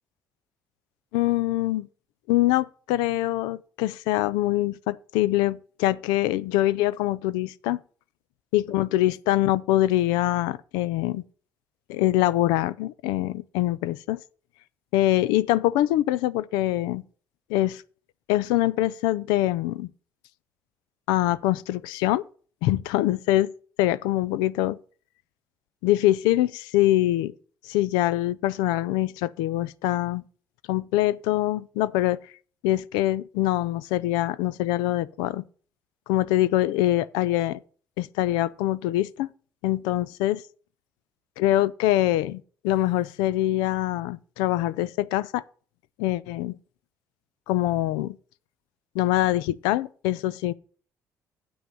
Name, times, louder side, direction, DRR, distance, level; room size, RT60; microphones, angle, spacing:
voice 1, 1.1-1.9 2.3-7.8 8.5-11.2 11.9-14.2 14.9-17.0 17.5-17.8 18.3-19.9 21.1-22.2 22.6-23.5 23.8-24.8 25.8-27.3 27.6-30.2 30.7-32.2 32.6-35.4 36.1-37.6 38.0-39.3 39.6-40.4 41.4-45.4 46.0-46.5 47.5-48.2 48.9-50.5, left 15 dB, 90° left, 0.4 m, -24 dB
7.9 x 6.0 x 6.8 m
supercardioid pair, 80°, 7 cm